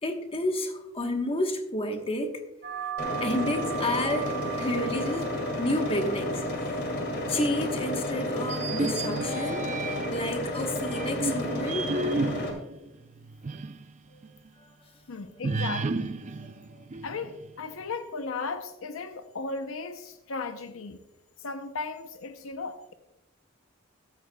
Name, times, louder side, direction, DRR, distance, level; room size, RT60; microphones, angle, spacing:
voice 1, 0.0-2.4 3.2-5.3 5.6-6.5 7.2-9.7 10.1-11.9 14.1-14.2 14.6-14.7, left 1 dB, 30° left, 5 dB, 1.2 m, -30 dB
sound 1, 2.6-11.7, right 11 dB, 55° right, 2.1 m, -41 dB
sound 2, 3.0-12.5, left 1 dB, 55° left, 2.4 m, -32 dB
sound 3, 8.4-10.3 10.9-13.9 14.2-14.3 15.4-17.5, right 2 dB, 35° right, 0.5 m, -32 dB
voice 2, 15.1-16.2 17.0-21.0 21.4-22.9, left 4 dB, 75° left, 8 dB, 0.7 m, -36 dB
14.5 x 12.5 x 2.3 m, 0.96 s
head